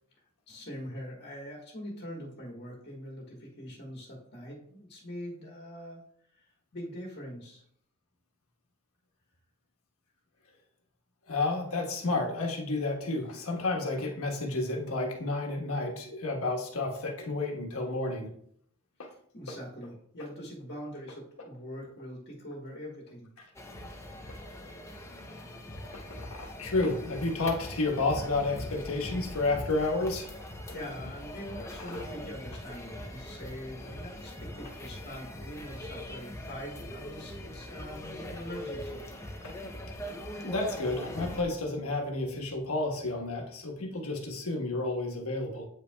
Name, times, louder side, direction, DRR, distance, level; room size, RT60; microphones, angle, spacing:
voice 1, 0.5-6.0 6.3-7.6 19.3-23.3 30.7-39.1, equal, 50° left, -2 dB, 1.3 m, -43 dB
voice 2, 11.3-18.3 19.0-19.1 25.9-30.4 39.4-39.7 40.4-45.7, left 2 dB, 70° left, 1 dB, 1.3 m, -31 dB
sound 1, 23.5-41.4, left 1 dB, 10° left, 0.6 m, -41 dB
8.2 x 5.3 x 2.3 m, 0.65 s
head